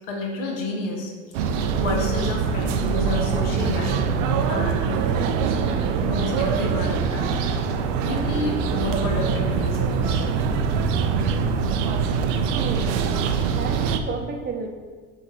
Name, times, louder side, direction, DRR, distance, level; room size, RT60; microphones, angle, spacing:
voice 1, 0.1-1.1 1.5-4.0 4.5-4.9 6.0-7.4 8.0-10.3, left 2 dB, 75° left, 0 dB, 1.1 m, -29 dB
sound 1, 1.3-14.0, right 6 dB, 75° right, 0.5 m, -23 dB
voice 2, 12.5-13.0 13.3-14.7, right 5 dB, 25° right, 3 dB, 0.6 m, -32 dB
5.1 x 2.5 x 3.9 m, 1.5 s
hypercardioid pair, 90°, 38 cm